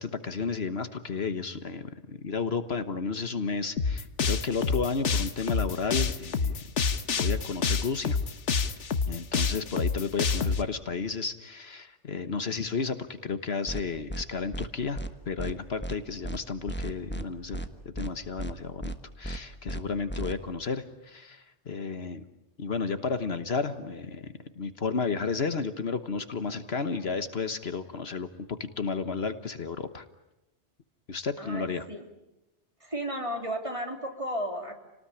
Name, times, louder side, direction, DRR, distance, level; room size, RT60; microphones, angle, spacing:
voice 1, 0.0-6.6 7.2-8.2 9.1-22.2 22.6-30.0 31.1-31.8, left 4 dB, 60° left, 11 dB, 1.5 m, -32 dB
sound 1, 3.8-10.6, left 5 dB, 80° left, 1.5 m, -27 dB
sound 2, 13.7-13.8 14.1-14.2 14.5-14.7 15.0-15.1 15.4-15.5 15.8-16.0 16.2-16.4 16.7-17.2 17.5-17.7 18.0-18.1 18.4-18.5 18.8-19.0 19.2-19.4 19.7-19.8 20.1-20.3, right 1 dB, 10° left, 1.3 m, -34 dB
voice 2, 31.4-32.1 32.8-34.7, equal, 25° right, 4 dB, 3.3 m, -34 dB
29.5 x 19.0 x 10.0 m, 0.93 s
omnidirectional pair, 1.2 m